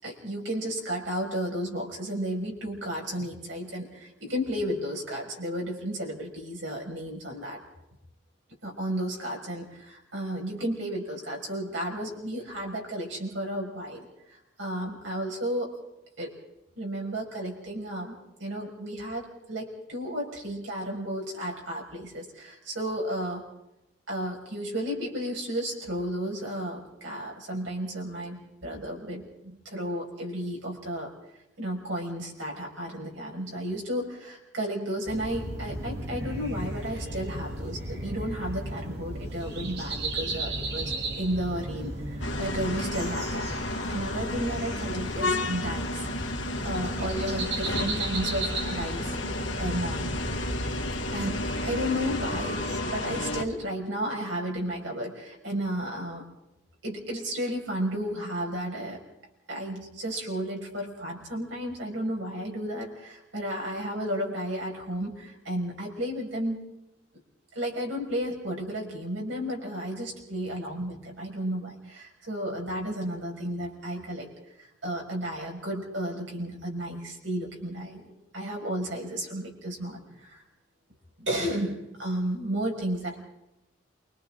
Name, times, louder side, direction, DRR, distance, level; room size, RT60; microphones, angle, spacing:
voice 1, 0.0-7.6 8.6-15.7 16.2-16.3 16.8-23.5 24.1-31.1 31.6-43.5 43.9-46.1 46.6-49.2 49.6-50.1 51.1-52.6 52.9-56.2 56.8-59.0 59.5-66.6 67.5-74.3 74.6-80.4 81.2-83.2, equal, 75° right, 0 dB, 6.1 m, -33 dB
sound 1, 35.1-52.8, right 2 dB, 60° right, 3.1 m, -35 dB
sound 2, 42.2-53.4, left 2 dB, 75° left, 1.8 m, -32 dB
28.5 x 24.0 x 3.9 m, 0.89 s
head